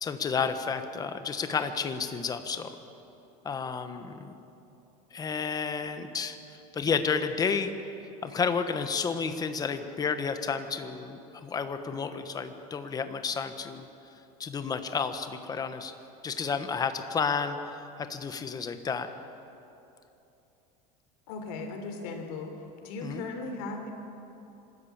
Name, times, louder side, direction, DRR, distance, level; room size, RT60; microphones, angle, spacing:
voice 1, 0.0-2.7 3.4-4.4 5.1-7.7 8.2-13.9 14.4-15.9 16.2-19.1 23.0-23.2, left 5 dB, 20° left, 9 dB, 1.2 m, -31 dB
voice 2, 21.3-22.5 22.8-23.9, left 3 dB, 75° left, 5 dB, 3.7 m, -37 dB
25.0 x 13.5 x 8.6 m, 2.9 s
cardioid pair, 150°, 19 cm